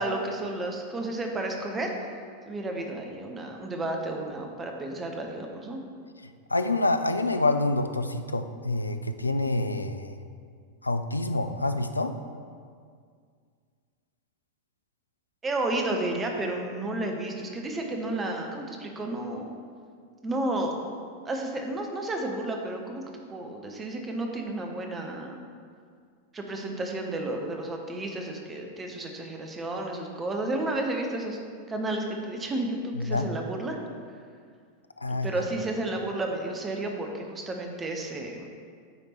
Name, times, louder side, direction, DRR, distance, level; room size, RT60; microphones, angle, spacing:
voice 1, 0.0-1.9 2.5-5.8 15.4-19.5 20.2-20.7 21.2-23.0 23.3-25.4 26.3-31.4 31.7-33.8 35.2-38.5, right 2 dB, 20° right, 2 dB, 0.8 m, -32 dB
voice 2, 6.5-10.2 10.8-12.2 33.0-33.3 35.0-35.3, left 2 dB, 80° left, 9 dB, 0.3 m, -27 dB
9.0 x 3.6 x 4.3 m, 2.1 s
figure-of-eight pair, 90°, 0 cm